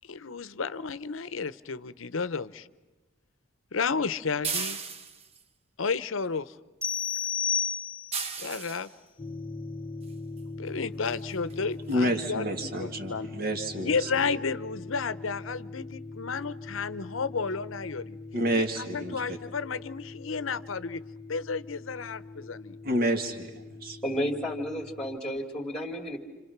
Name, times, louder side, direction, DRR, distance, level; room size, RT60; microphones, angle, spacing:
voice 1, 0.0-2.7 3.7-4.8 5.8-6.5 8.4-8.9 10.6-12.4 12.8-13.3 13.8-18.2 18.5-21.0 21.3-22.8, left 5 dB, 80° left, 15 dB, 0.8 m, -32 dB
sound 1, 4.4-5.4 8.1-8.9 10.4-10.5 11.0-11.2 11.5-11.6 11.9-12.0, right 5 dB, 30° right, 0.9 m, -34 dB
sound 2, 6.8-8.3, left 7 dB, 10° right, 2.8 m, -30 dB
sound 3, 9.2-25.2, left 3 dB, 25° left, 0.8 m, -42 dB
voice 2, 11.9-14.1 18.3-19.4 22.8-24.0, equal, 50° right, 5 dB, 2.1 m, -29 dB
voice 3, 24.0-26.2, equal, 5° left, 2 dB, 2.5 m, -32 dB
29.5 x 27.5 x 5.9 m, 1.1 s
head